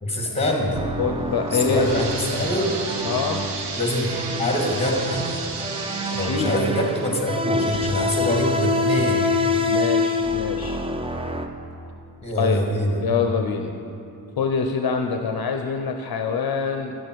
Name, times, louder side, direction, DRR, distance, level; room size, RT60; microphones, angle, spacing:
voice 1, 0.0-0.8 1.5-2.8 3.7-4.1 4.4-5.3 6.2-9.4 12.2-13.0, left 1 dB, 15° left, -1 dB, 1.6 m, -24 dB
sound 1, 0.7-11.5, right 1 dB, 15° right, 0.4 m, -29 dB
voice 2, 1.0-1.9 3.0-3.4 6.2-6.6 9.6-10.8 12.4-12.6 13.0-13.7 14.4-17.0, left 6 dB, 65° left, 4 dB, 0.6 m, -25 dB
sound 2, 1.3-8.9 9.4-9.5 10.2-10.3 10.7-10.8, right 4 dB, 90° right, 0.9 m, -34 dB
Wind instrument woodwind instrument, 7.4-11.1, left 5 dB, 35° right, 0.8 m, -25 dB
10.5 x 6.7 x 4.5 m, 2.8 s
wide cardioid pair, 130°, 40 cm